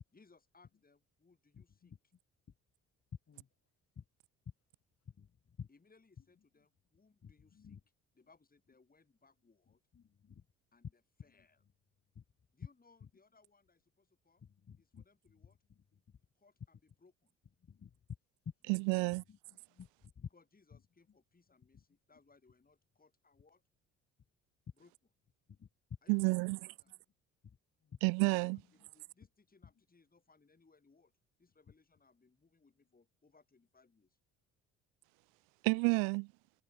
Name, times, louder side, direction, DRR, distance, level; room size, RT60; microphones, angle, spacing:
voice 1, 0.1-1.9 5.7-7.8 8.1-9.8 10.7-11.6 12.5-14.5 14.8-15.6 16.3-17.3 18.8-19.3 20.3-23.6 24.8-24.9 26.0-27.0 28.5-31.1 31.4-34.2, left 4 dB, 25° left, 6.3 m, -68 dB
voice 2, 1.5-2.0 3.3-3.5 4.0-4.1 5.1-5.7 7.2-7.8 9.9-10.4 12.1-12.2 13.0-13.1 14.4-15.0 16.1-16.2 17.6-18.0 19.3-19.9 20.2-20.3 25.5-25.7 27.4-27.6 27.8-28.0, left 7 dB, 40° left, 4.0 m, -53 dB
voice 3, 18.7-19.2 26.1-26.6 28.0-28.6 35.6-36.3, right 37 dB, 75° right, 0.5 m, -30 dB
hypercardioid pair, 55°, 34 cm